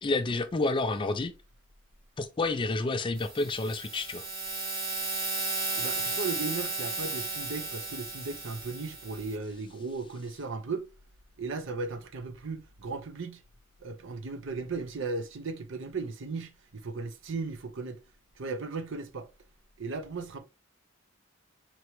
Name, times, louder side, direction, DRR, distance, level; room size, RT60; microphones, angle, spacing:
voice 1, 0.0-1.3 2.2-4.2, left 2 dB, 25° left, 0.3 m, -29 dB
sound 1, 3.2-9.4, right 3 dB, 25° right, 1.0 m, -34 dB
voice 2, 5.8-10.9 11.4-13.4 13.8-18.0 18.4-19.3 19.8-20.4, right 4 dB, 65° right, 0.6 m, -36 dB
4.5 x 3.0 x 3.0 m
head